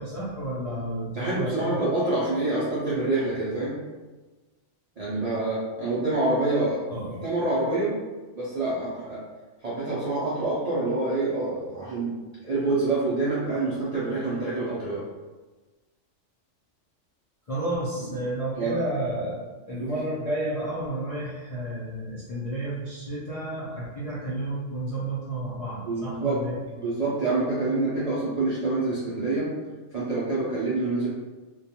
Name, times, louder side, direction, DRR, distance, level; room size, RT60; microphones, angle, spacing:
voice 1, 0.0-1.8 6.9-7.2 17.5-19.4 19.6-26.6, right 1 dB, 55° left, -9 dB, 0.4 m, -31 dB
voice 2, 1.1-3.8 5.0-6.8 7.2-8.0 8.3-9.2 9.6-12.1 12.4-15.0 18.0-18.1 18.6-18.8 19.8-19.9 25.8-26.4 26.8-29.5 29.9-31.1, right 2 dB, 55° right, -9 dB, 0.4 m, -26 dB
2.3 x 2.2 x 2.8 m, 1.2 s
omnidirectional pair, 1.4 m